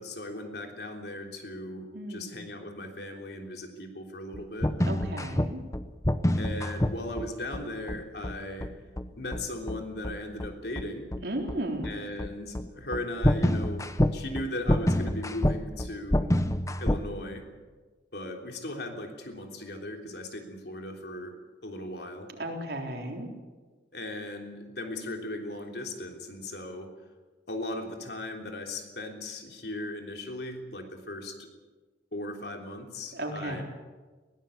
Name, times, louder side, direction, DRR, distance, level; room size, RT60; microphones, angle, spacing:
voice 1, 0.0-4.8 6.4-8.7 9.2-11.1 11.8-16.3 16.8-17.4 18.1-21.4 21.6-22.3 23.9-26.9 27.5-31.5 32.1-33.6, left 1 dB, 65° left, 3 dB, 3.4 m, -37 dB
voice 2, 1.9-2.4 4.9-5.6 11.2-11.9 22.3-23.3 33.1-33.6, right 1 dB, 70° right, 2 dB, 3.8 m, -34 dB
sound 1, 4.3-17.1, left 1 dB, 15° left, 0.8 m, -27 dB
21.5 x 17.5 x 8.4 m, 1.3 s
head